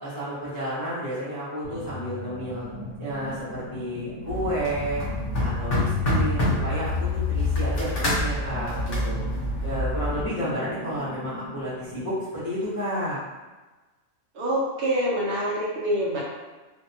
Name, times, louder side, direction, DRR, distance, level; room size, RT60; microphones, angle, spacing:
voice 1, 0.0-2.7 3.0-5.0 5.4-8.8 9.0-9.2 9.6-13.2, equal, 20° left, -12 dB, 0.6 m, -31 dB
sound 1, 1.6-12.1, left 4 dB, 85° left, 1.0 m, -33 dB
sound 2, 4.3-10.2, left 1 dB, 55° left, 0.8 m, -28 dB
voice 2, 14.3-16.2, equal, 70° right, -5 dB, 0.9 m, -25 dB
2.5 x 2.2 x 2.6 m, 1.2 s
omnidirectional pair, 1.3 m